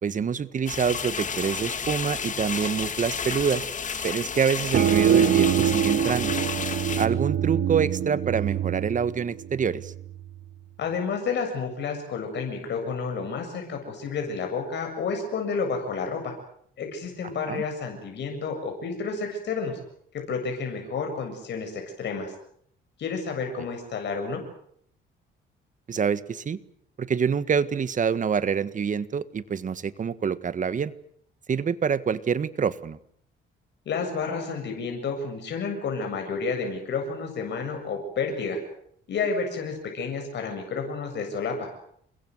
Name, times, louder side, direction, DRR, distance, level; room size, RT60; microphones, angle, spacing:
voice 1, 0.0-3.7 4.0-6.3 7.0-9.9 17.5-17.6 25.9-26.6 27.0-30.9 31.5-33.0, right 6 dB, 40° right, 14 dB, 1.6 m, -26 dB
sound 1, 0.7-7.1, left 6 dB, 35° left, 2.4 m, -31 dB
sound 2, 4.7-10.1, right 9 dB, 60° right, 1.0 m, -24 dB
voice 2, 10.8-16.3 16.8-19.8 20.3-22.3 23.0-24.4 33.9-38.6 39.1-41.7, left 5 dB, 60° left, 3 dB, 7.7 m, -30 dB
29.5 x 22.5 x 8.0 m, 0.67 s
cardioid pair, 115°, 21 cm